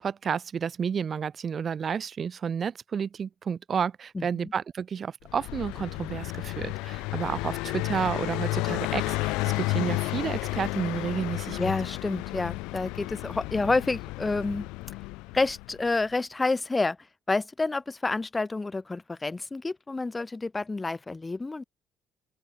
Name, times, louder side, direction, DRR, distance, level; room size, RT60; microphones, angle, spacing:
voice 1, 0.0-11.7, right 7 dB, 50° right, 0.8 m, -31 dB
voice 2, 4.1-4.5 11.6-14.7 15.3-17.0 17.3-21.6, left 3 dB, 25° left, 1.8 m, -29 dB
Car passing by, 5.3-15.9, left 23 dB, 85° left, 0.6 m, -32 dB
open air
supercardioid pair, 65°, 0 cm